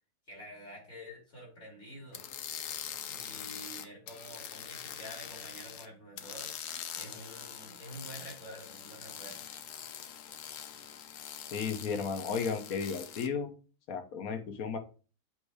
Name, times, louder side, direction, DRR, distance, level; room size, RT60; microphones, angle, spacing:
voice 1, 0.3-2.2 3.1-6.5 6.9-9.5, equal, 45° left, -4 dB, 4.1 m, -48 dB
sound 1, 2.1-5.9 6.2-13.3, left 9 dB, 90° left, 1.2 m, -43 dB
voice 2, 11.5-13.5 13.9-14.8, left 6 dB, 70° left, 6 dB, 1.3 m, -34 dB
7.9 x 2.7 x 4.8 m, 0.36 s
omnidirectional pair, 1.6 m